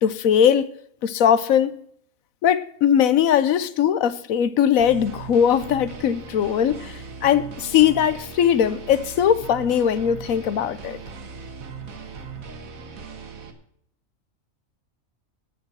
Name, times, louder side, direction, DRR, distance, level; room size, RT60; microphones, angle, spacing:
voice 1, 0.0-0.7 1.0-1.8 2.4-11.0, left 9 dB, 85° left, 1.2 m, -20 dB
sound 1, 4.8-13.5, right 5 dB, 85° right, 1.8 m, -38 dB
10.5 x 8.6 x 7.4 m
omnidirectional pair, 1.4 m